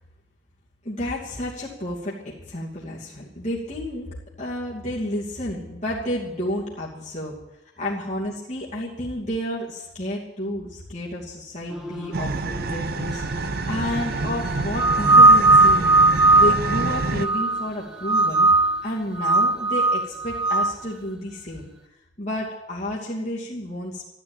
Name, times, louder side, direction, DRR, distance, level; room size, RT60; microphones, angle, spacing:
voice 1, 0.8-4.1 4.4-7.4 7.8-15.9 16.4-18.5 18.8-21.7 22.2-24.0, left 1 dB, 40° left, -6 dB, 2.7 m, -31 dB
sound 1, 11.7-21.8, right 1 dB, 5° right, 1.9 m, -41 dB
sound 2, 12.1-17.3, right 3 dB, 55° right, 0.7 m, -28 dB
sound 3, 14.8-17.7 18.0-18.8 19.2-20.7, right 2 dB, 25° right, 0.8 m, -17 dB
13.5 x 12.0 x 9.0 m, 0.96 s
head